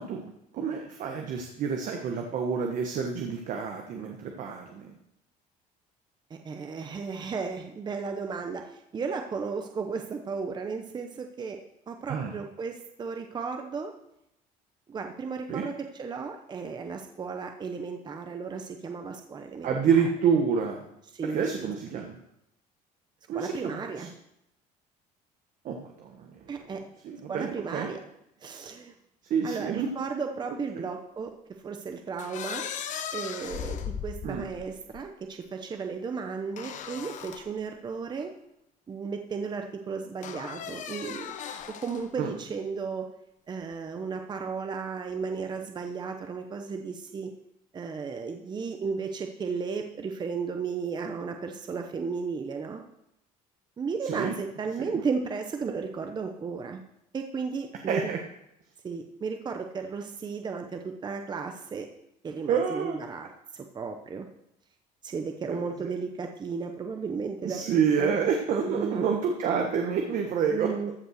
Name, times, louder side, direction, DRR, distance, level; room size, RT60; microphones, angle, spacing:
voice 1, 0.0-4.9 12.1-12.3 15.5-15.7 19.6-20.8 21.2-22.2 23.3-24.1 25.6-26.5 27.0-27.9 29.3-29.9 30.7-30.8 34.2-34.4 42.2-42.3 54.0-54.3 54.8-55.0 57.9-58.2 62.5-63.0 65.8-65.9 67.4-70.7, right 6 dB, 55° right, 3 dB, 1.3 m, -28 dB
voice 2, 6.3-11.6 11.9-13.9 14.9-20.1 21.1-22.1 23.3-24.1 26.5-26.8 27.3-28.0 28.4-28.9 29.4-31.3 31.6-32.7 33.1-38.3 38.9-41.3 41.8-43.1 43.5-47.3 47.7-52.8 53.8-56.8 57.1-58.1 58.8-61.9 62.2-64.3 65.0-68.2 68.6-69.1 70.5-70.9, right 5 dB, 30° right, 4 dB, 0.9 m, -34 dB
sound 1, 32.2-35.0 36.6-37.5 38.2-38.3 40.2-42.1, left 8 dB, 50° left, 0.9 m, -37 dB
14.5 x 5.5 x 6.5 m, 0.81 s
cardioid pair, 120°, 16 cm